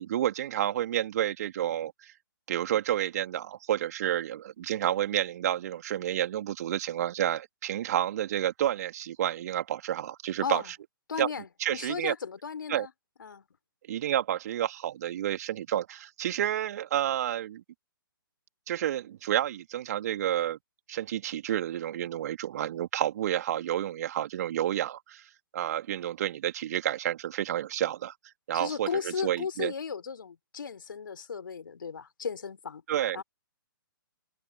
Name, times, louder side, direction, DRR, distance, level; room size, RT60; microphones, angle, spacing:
voice 1, 0.0-2.1 2.5-10.8 11.2-11.3 11.6-12.1 12.7-12.9 13.9-17.6 18.7-20.6 20.9-28.1 28.5-29.7 32.9-33.2, right 11 dB, 45° right, 2.8 m, -30 dB
voice 2, 11.1-12.9 13.2-13.4 28.5-32.8 33.1-33.2, left 6 dB, 65° left, 3.1 m, -35 dB
figure-of-eight pair, 130°, 12 cm